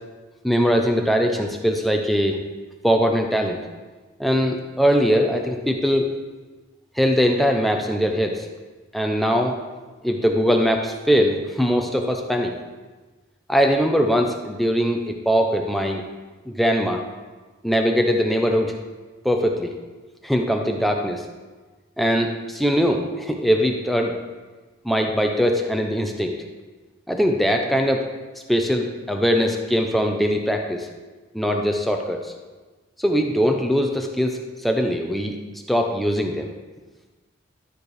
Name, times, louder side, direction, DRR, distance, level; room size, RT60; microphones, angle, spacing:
voice 1, 0.4-2.4 2.8-3.6 4.2-6.1 7.0-8.5 8.9-9.6 10.0-12.5 13.5-16.0 16.5-17.0 17.6-18.7 19.2-19.7 20.2-21.2 22.0-24.1 24.8-26.3 27.1-28.0 28.3-30.9 31.3-32.2 33.0-35.4 35.7-36.5, equal, ahead, 2 dB, 0.7 m, -21 dB
12.5 x 4.5 x 4.9 m, 1.3 s
head